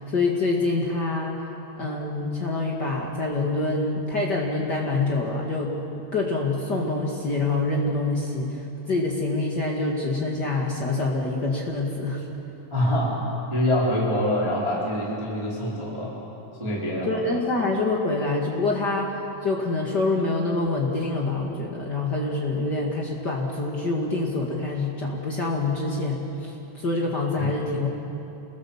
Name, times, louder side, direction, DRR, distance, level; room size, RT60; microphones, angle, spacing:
voice 1, 0.1-1.4 1.8-5.7 6.1-8.6 8.9-12.2 17.0-27.9, left 2 dB, 60° left, -2 dB, 1.0 m, -26 dB
voice 2, 12.7-13.1 13.5-16.2 16.6-17.2 27.4-27.5, left 1 dB, 5° right, -6 dB, 3.4 m, -25 dB
29.0 x 20.5 x 7.3 m, 3.0 s
omnidirectional pair, 5.5 m